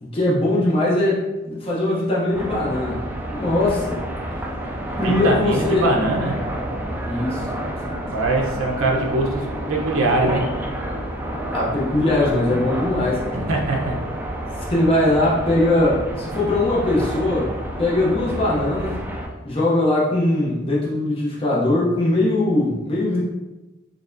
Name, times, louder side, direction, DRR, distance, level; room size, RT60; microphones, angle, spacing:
voice 1, 0.0-3.0 3.3-4.0 5.0-5.9 7.0-7.6 11.5-13.4 14.7-17.5 17.8-19.0 19.4-23.2, left 1 dB, 25° left, -6 dB, 0.7 m, -21 dB
sound 1, 2.3-19.3, right 1 dB, 10° right, 0.3 m, -29 dB
voice 2, 4.9-6.4 8.1-10.4 13.3-14.0, right 2 dB, 75° right, -1 dB, 0.8 m, -22 dB
4.1 x 3.4 x 2.6 m, 1.1 s
head